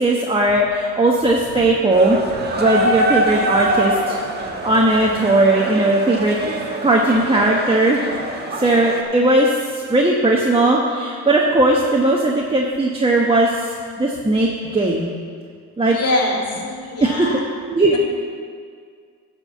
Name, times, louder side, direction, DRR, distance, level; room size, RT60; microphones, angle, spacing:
voice 1, 0.0-2.2 2.6-4.2 4.6-6.4 6.8-8.0 8.6-15.1 15.8-16.0 17.0-17.3 17.7-18.0, right 2 dB, 20° right, -2 dB, 1.1 m, -17 dB
sound 1, 1.9-9.0, right 1 dB, 35° right, 1.4 m, -24 dB
voice 2, 15.9-17.4 17.9-18.0, left 2 dB, 55° left, -1 dB, 2.1 m, -24 dB
12.0 x 4.6 x 7.1 m, 2.1 s
cardioid pair, 90°, 30 cm